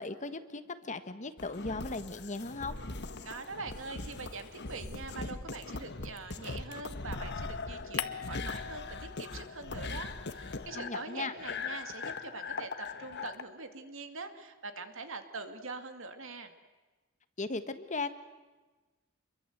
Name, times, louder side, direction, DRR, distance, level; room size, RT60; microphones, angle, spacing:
voice 1, 0.0-2.8 10.7-11.3 17.4-18.1, left 3 dB, 35° left, 10 dB, 1.4 m, -37 dB
sound 1, 1.4-13.4, left 3 dB, 55° left, 1.4 m, -40 dB
voice 2, 3.2-16.5, right 3 dB, 65° right, 7 dB, 2.5 m, -43 dB
sound 2, 8.0-9.7 10.0-12.4, left 8 dB, 75° left, 1.3 m, -44 dB
28.0 x 23.0 x 8.1 m, 1.2 s
head